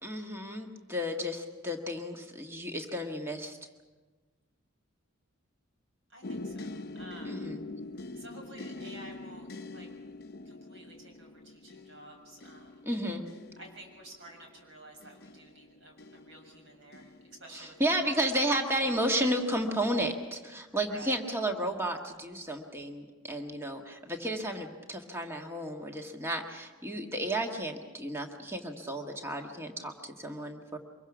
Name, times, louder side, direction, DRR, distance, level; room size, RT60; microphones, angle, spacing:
voice 1, 0.0-3.6 7.2-7.6 12.8-13.2 17.5-30.8, right 1 dB, 10° right, 2 dB, 1.6 m, -32 dB
voice 2, 6.1-7.4 8.1-9.9 10.4-12.8 13.6-18.1 18.5-18.8 20.9-21.2, right 1 dB, 60° right, 2 dB, 6.7 m, -51 dB
sound 1, 6.2-18.1 18.8-19.2 19.6-19.9, left 2 dB, 45° left, 0.7 m, -45 dB
24.5 x 22.5 x 6.0 m, 1.3 s
head